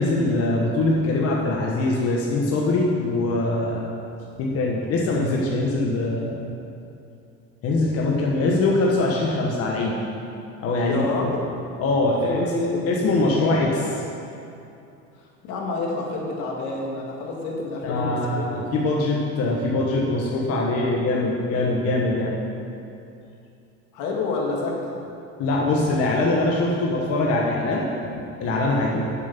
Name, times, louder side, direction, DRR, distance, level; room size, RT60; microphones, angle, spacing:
voice 1, 0.0-3.8 4.4-6.5 7.6-10.0 10.6-11.1 11.8-12.4 12.9-14.0 17.8-22.4 25.4-29.0, left 2 dB, 55° left, -2 dB, 1.4 m, -23 dB
voice 2, 10.8-11.4 12.2-12.9 15.4-18.6 23.9-25.0, left 3 dB, 80° left, -2 dB, 2.3 m, -28 dB
10.5 x 7.5 x 5.9 m, 2.7 s
cardioid pair, 135°, 29 cm